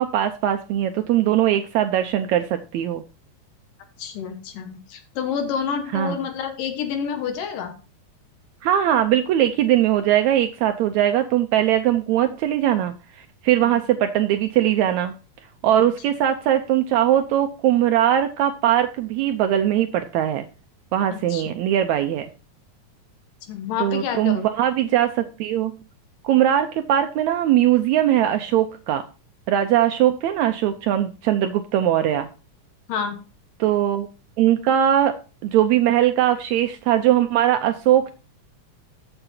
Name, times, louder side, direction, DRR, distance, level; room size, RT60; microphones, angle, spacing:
voice 1, 0.0-3.0 5.9-6.2 8.6-15.1 15.6-20.5 20.9-22.3 23.8-25.7 26.2-29.1 29.5-32.3 33.6-34.1 34.4-35.2 35.4-38.1, right 11 dB, 75° right, 8 dB, 1.7 m, -20 dB
voice 2, 4.0-7.7 13.6-13.8 21.1-21.4 23.5-24.4 32.9-33.2, left 7 dB, 90° left, 6 dB, 2.9 m, -28 dB
14.0 x 6.7 x 2.8 m, 0.34 s
omnidirectional pair, 3.7 m